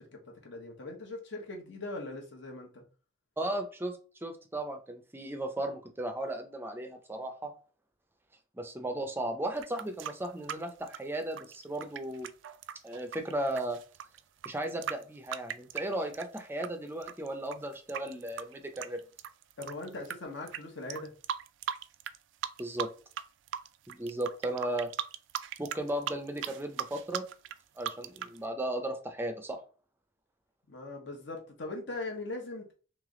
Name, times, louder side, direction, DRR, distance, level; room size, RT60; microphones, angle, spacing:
voice 1, 0.0-2.8 19.6-21.1 30.7-32.7, left 2 dB, 70° left, 2 dB, 1.1 m, -40 dB
voice 2, 3.4-7.5 8.6-12.3 12.8-13.8 14.5-19.0 22.6-22.9 23.9-24.9 25.6-27.2 27.8-29.6, right 1 dB, 10° right, 6 dB, 0.4 m, -35 dB
sound 1, 9.6-16.7 17.0-20.1 20.5-20.6 20.9-22.2 22.4-23.2 23.5-28.4, right 9 dB, 75° right, 0.3 m, -38 dB
3.3 x 3.1 x 3.7 m, 0.38 s
head